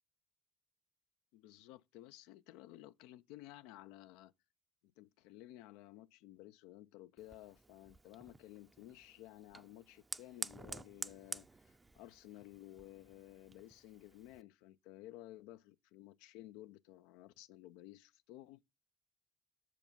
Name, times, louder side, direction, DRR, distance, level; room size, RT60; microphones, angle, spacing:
voice 1, 1.3-4.3 4.8-18.6, left 15 dB, 75° left, 0.3 m, -55 dB
Fire, 7.2-14.4, right 3 dB, 20° right, 0.5 m, -50 dB
6.9 x 4.9 x 5.2 m
hypercardioid pair, 55°, 0 cm